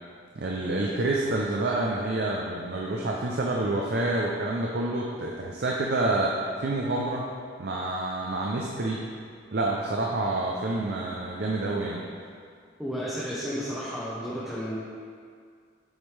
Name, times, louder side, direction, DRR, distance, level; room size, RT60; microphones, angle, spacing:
voice 1, 0.4-7.2 7.6-9.0 9.5-12.0, right 2 dB, 55° right, -2 dB, 0.5 m, -28 dB
voice 2, 12.8-14.7, equal, ahead, -8 dB, 0.7 m, -32 dB
7.2 x 5.3 x 3.3 m, 2.1 s
head